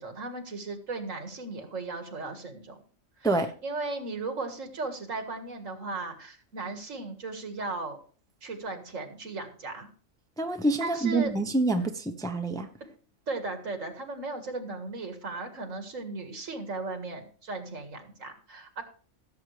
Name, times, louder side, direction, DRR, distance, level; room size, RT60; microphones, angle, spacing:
voice 1, 0.0-2.8 3.2-8.0 8.4-9.9 10.8-11.3 13.3-18.8, right 3 dB, 85° right, 6 dB, 2.1 m, -36 dB
voice 2, 10.4-12.7, right 2 dB, 5° left, 6 dB, 0.6 m, -27 dB
16.5 x 7.5 x 3.3 m, 0.41 s
omnidirectional pair, 1.3 m